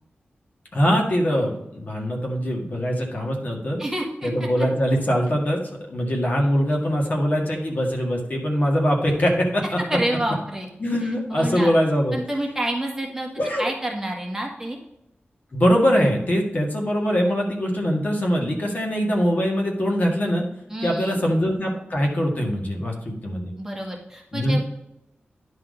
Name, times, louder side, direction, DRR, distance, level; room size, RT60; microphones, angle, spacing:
voice 1, 0.7-3.8 4.2-5.6 5.9-9.8 10.8-12.2 13.4-13.6 15.5-20.5 20.8-23.5 24.3-24.6, equal, 45° left, -1 dB, 1.9 m, -22 dB
voice 2, 3.8-4.3 4.6-4.7 9.9-10.7 11.0-11.7 12.1-13.3 13.6-14.8 20.7-21.2 23.6-24.6, right 1 dB, 10° right, -1 dB, 1.7 m, -28 dB
10.5 x 4.1 x 5.1 m, 0.83 s
wide cardioid pair, 125°, 4 cm